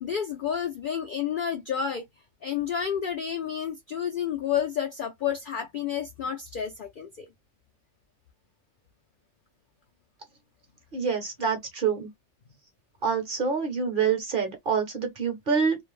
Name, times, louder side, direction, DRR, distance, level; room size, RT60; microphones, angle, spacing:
voice 1, 0.0-2.0 2.4-7.3, left 8 dB, 70° left, 0.4 m, -30 dB
voice 2, 10.9-12.1 13.0-15.8, right 6 dB, 50° right, 0.7 m, -26 dB
2.4 x 2.0 x 3.0 m
omnidirectional pair, 1.4 m